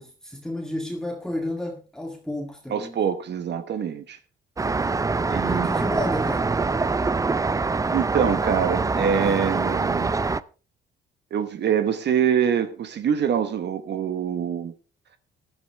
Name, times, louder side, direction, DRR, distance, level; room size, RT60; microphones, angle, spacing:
voice 1, 0.0-3.0 5.4-6.5, left 1 dB, 5° left, 1.8 m, -31 dB
voice 2, 2.7-4.2 5.3-5.7 7.9-10.2 11.3-14.7, right 8 dB, 60° right, 1.1 m, -24 dB
Traffic noise roadway noise, 4.6-10.4, right 3 dB, 15° right, 0.5 m, -24 dB
14.5 x 11.0 x 3.4 m
cardioid pair, 90°, 20 cm